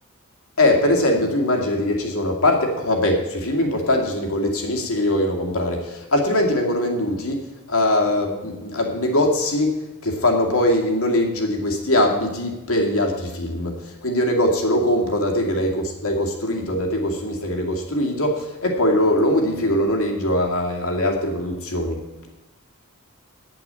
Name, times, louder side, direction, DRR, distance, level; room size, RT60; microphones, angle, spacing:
voice 1, 0.6-22.0, left 1 dB, 70° left, 1 dB, 2.3 m, -21 dB
8.8 x 8.6 x 8.8 m, 1.0 s
head